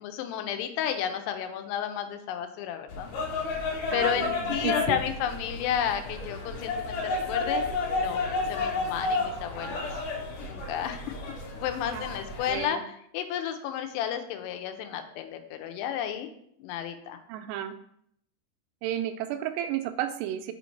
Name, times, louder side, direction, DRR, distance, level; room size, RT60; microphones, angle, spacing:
voice 1, 0.0-3.1 3.9-7.6 7.9-9.9 10.4-12.8 13.1-16.3 16.6-17.2, left 9 dB, 85° left, 6 dB, 2.8 m, -32 dB
sound 1, 2.9-12.6, left 3 dB, 65° left, 2.4 m, -31 dB
voice 2, 3.9-5.0 11.9-12.1 12.5-12.8 17.3-17.8 18.8-20.5, right 11 dB, 85° right, 8 dB, 2.7 m, -32 dB
6.3 x 4.5 x 4.1 m, 0.69 s
omnidirectional pair, 4.8 m